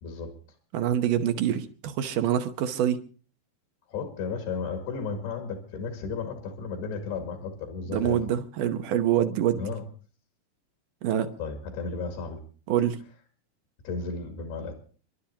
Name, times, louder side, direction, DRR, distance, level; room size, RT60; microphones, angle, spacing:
voice 1, 0.0-0.3 3.9-8.3 9.6-9.8 11.4-12.4 13.8-14.8, left 4 dB, 80° left, 3 dB, 4.2 m, -34 dB
voice 2, 0.7-3.0 7.9-9.6 11.0-11.3 12.7-13.0, right 10 dB, 70° right, 8 dB, 2.2 m, -25 dB
30.0 x 12.0 x 2.9 m, 0.40 s
omnidirectional pair, 4.7 m